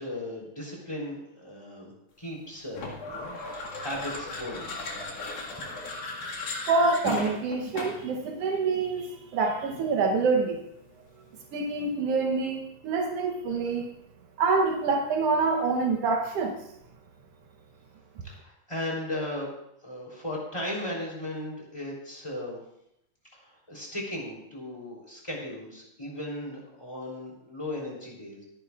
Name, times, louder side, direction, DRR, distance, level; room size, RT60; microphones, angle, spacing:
voice 1, 0.0-4.7 18.2-19.5 19.8-22.6 23.3-28.4, left 1 dB, 10° left, -2 dB, 2.9 m, -36 dB
sound 1, 2.7-8.1, left 3 dB, 55° left, 2.7 m, -36 dB
voice 2, 6.7-10.6 11.5-13.9 14.4-16.6, right 4 dB, 75° right, 2 dB, 1.4 m, -26 dB
23.0 x 10.0 x 2.4 m, 0.80 s
omnidirectional pair, 4.0 m